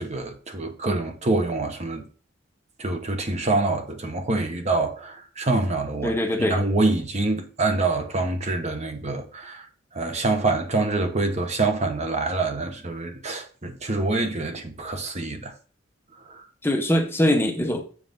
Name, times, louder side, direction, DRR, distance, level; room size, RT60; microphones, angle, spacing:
voice 1, 0.0-2.0 2.8-9.6 9.9-15.5 16.3-16.4, right 2 dB, 35° right, 1.1 m, -26 dB
voice 2, 6.0-6.6 16.6-17.8, left 1 dB, 10° left, 0.9 m, -22 dB
7.3 x 5.1 x 3.9 m
head